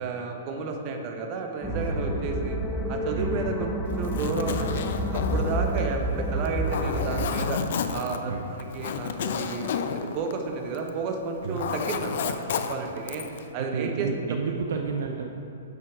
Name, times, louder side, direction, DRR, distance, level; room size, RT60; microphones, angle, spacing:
voice 1, 0.0-2.6 2.9-7.6 7.9-13.2 13.5-14.3, right 4 dB, 40° right, 3 dB, 1.1 m, -32 dB
sound 1, 1.6-7.3, right 1 dB, 5° left, 0.9 m, -29 dB
voice 2, 1.7-2.4 3.1-3.5 8.3-8.5 11.4-11.6 13.6-15.3, right 5 dB, 65° right, 3 dB, 0.6 m, -31 dB
Zipper (clothing), 3.9-11.0 11.3-13.4, left 7 dB, 60° left, 0.5 m, -31 dB
8.0 x 7.4 x 4.8 m, 2.9 s
figure-of-eight pair, 115°, 0 cm